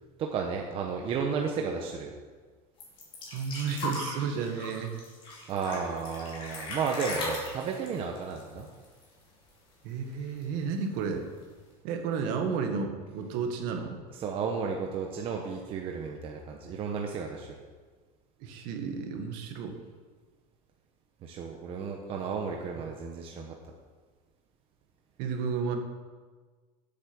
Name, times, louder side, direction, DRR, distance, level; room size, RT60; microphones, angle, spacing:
voice 1, 0.2-2.1 5.5-8.7 14.2-17.5 21.2-23.5, right 5 dB, 30° right, 1 dB, 1.0 m, -33 dB
sound 1, 2.8-9.2 9.5-9.6 9.9-10.6 11.4-11.5, left 2 dB, 25° left, 4.2 m, -38 dB
voice 2, 3.3-5.0 9.8-11.2 11.8-14.0 18.4-19.7 25.2-25.8, right 5 dB, 50° right, 5 dB, 1.8 m, -32 dB
14.0 x 8.6 x 6.2 m, 1.5 s
cardioid pair, 170°, 19 cm